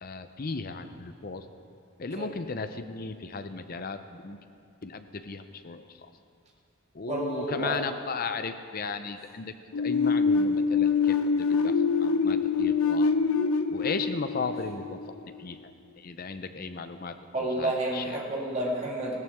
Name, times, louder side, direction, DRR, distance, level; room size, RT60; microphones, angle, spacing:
voice 1, 0.0-1.5 2.0-4.4 4.8-6.1 6.9-13.1 13.7-17.2 17.6-18.2, left 4 dB, 40° left, 9 dB, 0.6 m, -36 dB
voice 2, 7.1-7.8 17.3-19.2, right 1 dB, 30° right, -3 dB, 2.0 m, -30 dB
sound 1, 9.7-15.4, left 5 dB, 80° left, 0.6 m, -25 dB
16.0 x 13.5 x 3.6 m, 2.4 s
head